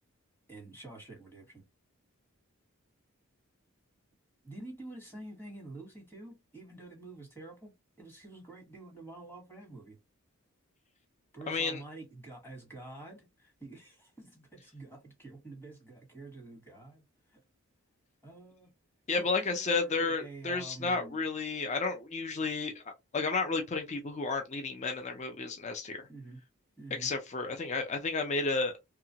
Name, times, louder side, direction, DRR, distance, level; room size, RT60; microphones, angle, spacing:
voice 1, 0.5-1.6 4.4-10.0 11.3-17.0 17.3-17.4 18.2-18.7 19.2-21.2 26.1-26.4 26.8-27.1, right 2 dB, 10° left, 1.2 m, -48 dB
voice 2, 11.5-11.8 19.1-26.1 27.0-28.7, left 4 dB, 30° left, 0.5 m, -32 dB
2.8 x 2.4 x 2.7 m
head